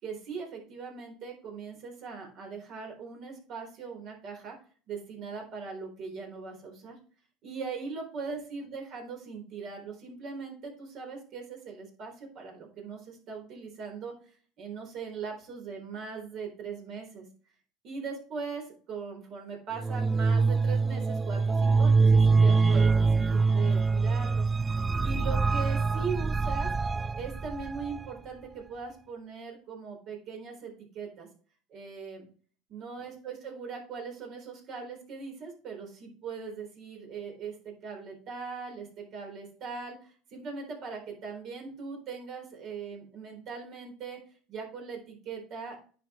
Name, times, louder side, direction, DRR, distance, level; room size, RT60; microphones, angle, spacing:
voice 1, 0.0-4.6 4.9-7.0 7.4-14.1 14.6-17.3 17.8-24.5 25.0-26.7 27.2-31.3 31.7-32.3 32.7-44.2 44.5-45.8, right 5 dB, 55° right, 1 dB, 4.0 m, -40 dB
sound 1, 19.8-28.1, right 4 dB, 20° right, 0.3 m, -24 dB
9.8 x 5.2 x 3.1 m, 0.41 s
supercardioid pair, 105°, 0 cm